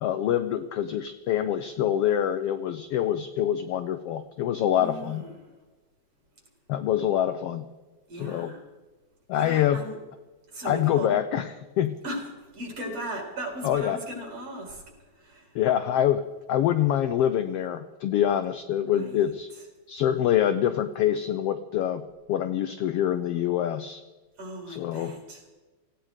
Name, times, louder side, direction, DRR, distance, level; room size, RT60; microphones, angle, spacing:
voice 1, 0.0-5.2 6.7-7.7 8.1-8.5 9.3-9.8 10.6-11.9 13.6-14.0 15.5-19.5 19.9-22.0 22.3-24.0 24.7-25.1, left 10 dB, 75° left, 9 dB, 1.4 m, -25 dB
voice 2, 4.8-5.3 8.1-8.6 9.4-10.0 10.5-11.2 12.0-12.2 12.5-14.8 15.2-15.5 18.9-19.2 24.4-25.4, right 1 dB, 50° right, 0 dB, 5.2 m, -37 dB
18.0 x 16.0 x 5.0 m, 1.2 s
omnidirectional pair, 3.4 m